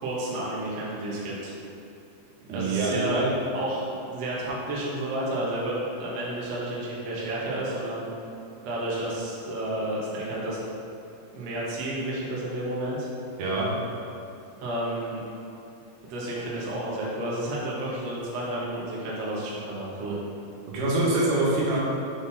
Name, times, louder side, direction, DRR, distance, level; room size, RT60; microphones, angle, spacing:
voice 1, 0.0-1.5 2.5-3.2 3.5-8.1 8.6-10.6 11.3-13.1 14.6-15.2 16.1-20.2, right 1 dB, 85° right, -6 dB, 1.4 m, -31 dB
voice 2, 2.5-3.3 13.4-13.7 20.7-21.8, right 2 dB, 70° right, -6 dB, 3.1 m, -25 dB
7.6 x 4.5 x 4.1 m, 2.7 s
omnidirectional pair, 5.2 m